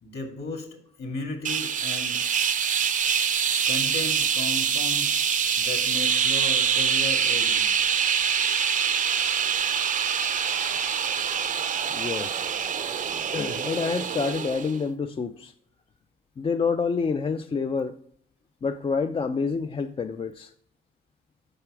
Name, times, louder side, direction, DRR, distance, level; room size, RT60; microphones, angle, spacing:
voice 1, 0.0-2.2 3.7-5.2 5.6-7.7, left 3 dB, 55° left, 2.2 m, -35 dB
sound 1, 1.4-14.8, right 7 dB, 40° right, 0.6 m, -25 dB
voice 2, 11.9-12.5 13.3-15.5 16.4-18.0 18.6-20.5, left 5 dB, 25° left, 0.4 m, -28 dB
7.8 x 5.9 x 4.8 m
cardioid pair, 90°, 20 cm